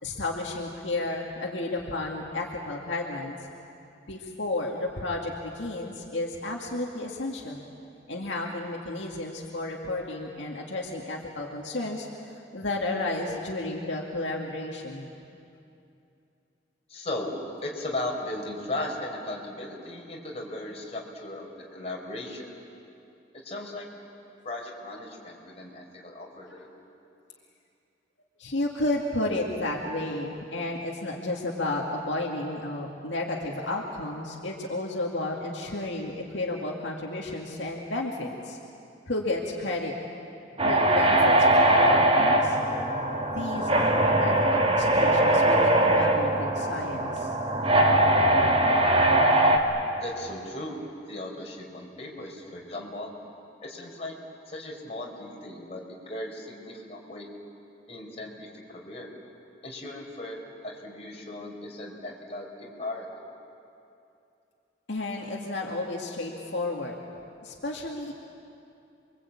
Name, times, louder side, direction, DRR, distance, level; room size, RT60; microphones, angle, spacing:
voice 1, 0.0-3.4 4.1-7.6 8.1-15.1 28.4-38.6 39.1-39.9 40.6-42.6 43.3-47.3 64.9-67.0 67.4-68.1, left 2 dB, 70° left, -2 dB, 2.3 m, -32 dB
voice 2, 16.9-17.3 17.6-22.5 23.4-23.9 24.4-26.7 50.0-50.8 51.1-53.1 53.6-54.1 54.5-57.3 57.9-59.1 59.6-60.4 60.6-63.2, left 1 dB, 35° left, -1 dB, 4.6 m, -37 dB
sound 1, 40.6-49.6, right 1 dB, 30° right, 2.2 m, -21 dB
29.0 x 23.0 x 8.6 m, 2.7 s
head